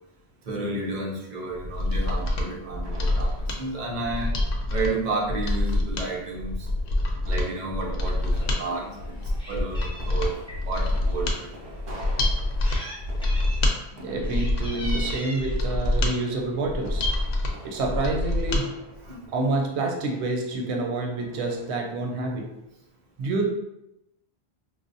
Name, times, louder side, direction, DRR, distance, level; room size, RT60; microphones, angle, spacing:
voice 1, 0.5-3.3 3.6-4.3 4.7-6.7 7.2-9.1 9.5-10.4 10.6-11.5 19.0-19.2, right 2 dB, 45° right, -2 dB, 0.8 m, -31 dB
Mechanisms, 1.6-18.6 19.0-19.1, left 1 dB, 65° left, 0.7 m, -26 dB
sound 1, 1.9-21.7, right 1 dB, 70° right, 1.2 m, -48 dB
Meow, 8.3-8.5 8.9-10.6 11.3-11.4 12.3-13.0 13.2-13.7 14.1-15.6 16.6-16.8 17.2-17.3 17.5-17.6 18.0-18.6, equal, 5° left, 0.4 m, -40 dB
voice 2, 14.0-17.0 17.6-18.8 19.3-22.5 23.2-23.5, right 2 dB, 90° right, 1 dB, 0.9 m, -28 dB
4.8 x 2.0 x 2.6 m, 0.87 s
omnidirectional pair, 1.1 m